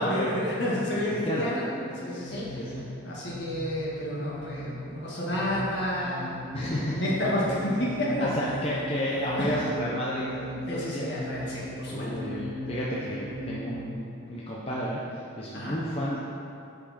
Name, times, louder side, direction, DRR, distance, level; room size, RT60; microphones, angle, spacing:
voice 1, 0.0-2.7 3.0-6.4 6.9-8.3 9.4-9.5 10.7-12.1 15.5-15.8, left 1 dB, 55° left, -6 dB, 1.8 m, -30 dB
voice 2, 1.1-1.5 2.6-2.8 6.5-7.1 8.2-10.2 10.5-11.2 11.9-16.2, equal, 30° left, -7 dB, 0.7 m, -31 dB
sound 1, 1.4-13.9, left 1 dB, 40° right, 1.5 m, -38 dB
8.3 x 5.2 x 4.2 m, 2.6 s
head